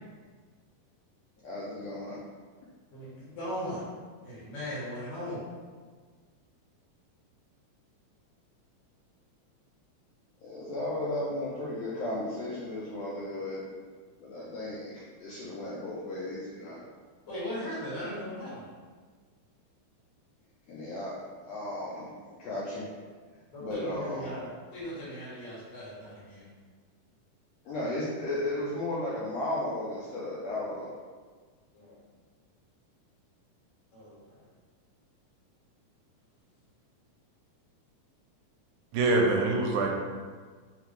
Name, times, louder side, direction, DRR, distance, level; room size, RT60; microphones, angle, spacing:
voice 1, 1.4-2.2 10.4-13.6 14.2-16.8 20.7-21.2 21.4-22.9 23.6-24.3 27.6-30.9, left 1 dB, 75° left, -7 dB, 1.6 m, -35 dB
voice 2, 2.9-3.8 4.2-5.4 17.3-18.6 23.5-26.5 31.7-32.0 33.9-34.4, equal, 55° left, -8 dB, 2.4 m, -38 dB
voice 3, 38.9-39.9, right 2 dB, 85° right, 0 dB, 2.0 m, -24 dB
4.7 x 3.3 x 3.3 m, 1.5 s
omnidirectional pair, 3.6 m